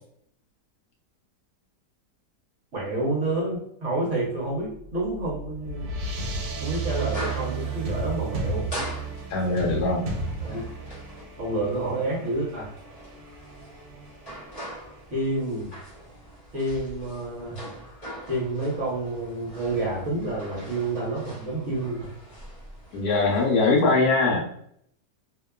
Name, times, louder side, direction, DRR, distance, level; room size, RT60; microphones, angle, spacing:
voice 1, 2.7-5.9 6.6-8.7 10.4-10.6 11.4-12.7 15.1-15.7 16.5-17.6 18.3-22.1, right 2 dB, 55° right, -4 dB, 1.0 m, -29 dB
sound 1, 4.7-15.5, right 3 dB, 80° right, 1.2 m, -34 dB
sound 2, 6.1-23.8, right 1 dB, 30° left, 0.8 m, -42 dB
voice 2, 9.3-10.1 22.9-24.4, left 3 dB, 70° left, -2 dB, 1.0 m, -21 dB
2.8 x 2.2 x 2.2 m, 0.67 s
omnidirectional pair, 1.8 m